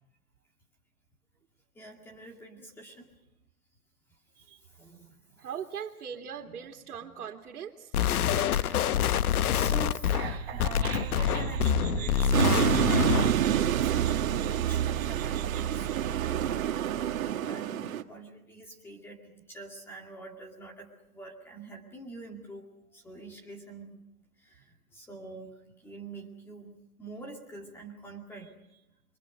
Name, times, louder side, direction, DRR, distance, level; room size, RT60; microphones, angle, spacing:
voice 1, 1.7-3.1 4.7-5.5 7.0-7.1 8.4-13.4 13.7-16.7 17.3-22.7 22.9-24.0 24.4-28.8, right 2 dB, 5° left, 1 dB, 2.3 m, -46 dB
voice 2, 5.4-7.9, right 8 dB, 85° right, 1 dB, 2.6 m, -40 dB
sound 1, 7.9-13.4, left 10 dB, 80° left, 1.0 m, -26 dB
sound 2, 10.1-17.3, right 11 dB, 40° right, 1.2 m, -33 dB
sound 3, 12.3-18.0, right 10 dB, 65° right, 1.7 m, -28 dB
28.5 x 23.5 x 5.2 m, 0.89 s
hypercardioid pair, 175°, 44 cm